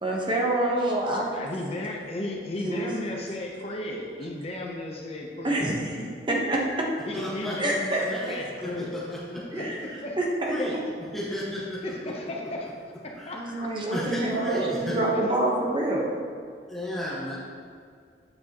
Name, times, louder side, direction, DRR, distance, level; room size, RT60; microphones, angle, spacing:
voice 1, 0.0-1.4 2.6-2.9 5.4-6.9 7.6-8.0 9.5-9.8 10.2-10.5 13.3-16.1, right 1 dB, 25° right, -2 dB, 1.0 m, -27 dB
voice 2, 1.1-6.1 7.1-9.0 9.3-10.2 10.6-10.7 11.8-12.7 13.0-14.0 15.1-15.3, left 1 dB, 35° left, 0 dB, 0.8 m, -35 dB
voice 3, 7.1-7.6 8.1-9.6 10.5-10.7 11.1-12.3 13.2-13.5 13.9-15.0 16.7-17.4, left 1 dB, ahead, -8 dB, 1.5 m, -33 dB
8.8 x 6.2 x 3.0 m, 2.1 s
head